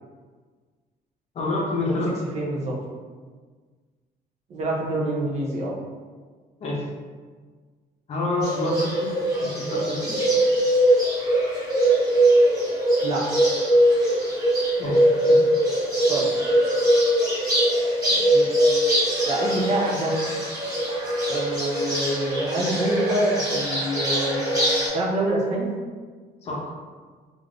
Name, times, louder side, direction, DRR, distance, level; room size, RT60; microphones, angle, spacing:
voice 1, 1.3-2.2 6.6-6.8 8.1-9.1 9.4-10.2 14.8-15.4 26.4-26.8, left 2 dB, 40° left, -4 dB, 0.6 m, -28 dB
voice 2, 2.3-2.7 4.5-5.7 13.0-13.2 16.1-16.3 18.1-18.5 19.3-20.1 21.3-24.4 24.9-25.7, right 1 dB, 45° right, -3 dB, 0.5 m, -26 dB
Bird, 8.4-24.9, right 1 dB, 25° right, 0.9 m, -22 dB
2.5 x 2.4 x 3.2 m, 1.5 s
cardioid pair, 165°, 16 cm